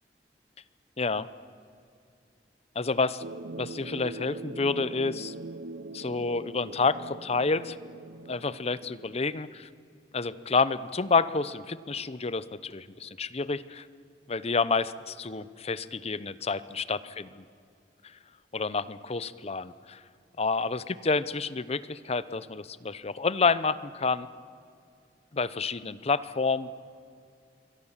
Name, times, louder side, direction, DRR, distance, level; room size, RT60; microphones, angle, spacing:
voice 1, 1.0-1.3 2.7-3.2 3.6-5.3 5.9-7.8 8.3-9.7 10.1-13.9 14.3-17.4 18.5-20.0 20.4-24.3 25.3-26.7, left 4 dB, 35° left, 16 dB, 0.8 m, -29 dB
sound 1, 3.2-9.4, right 2 dB, 65° right, 0.7 m, -42 dB
27.5 x 23.5 x 7.4 m, 2.4 s
head